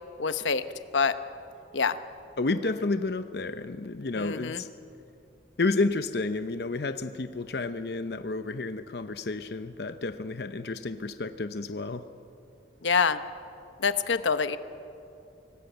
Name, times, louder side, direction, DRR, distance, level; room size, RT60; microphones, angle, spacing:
voice 1, 0.2-0.6 0.9-1.2 1.7-2.0 4.1-4.6 12.8-13.2 13.8-14.6, left 5 dB, 90° left, 11 dB, 0.9 m, -25 dB
voice 2, 2.4-4.7 5.6-12.1, left 3 dB, 60° left, 10 dB, 0.7 m, -31 dB
25.5 x 18.5 x 8.0 m, 2.7 s
head